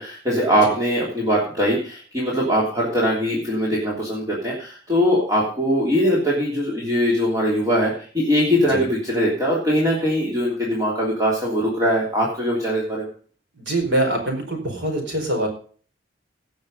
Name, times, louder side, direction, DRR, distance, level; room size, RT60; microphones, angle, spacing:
voice 1, 0.0-13.1, equal, 20° right, -5 dB, 3.1 m, -21 dB
voice 2, 13.5-15.5, right 1 dB, 65° right, 3 dB, 4.6 m, -24 dB
17.5 x 6.4 x 5.4 m, 0.43 s
head